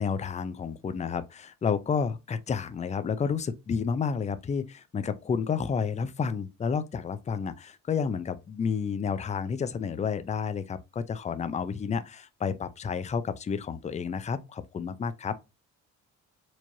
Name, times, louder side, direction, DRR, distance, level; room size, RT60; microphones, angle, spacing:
voice 1, 0.0-15.3, left 6 dB, 25° left, 0.4 m, -30 dB
4.6 x 2.9 x 2.6 m
cardioid pair, 90°, 30 cm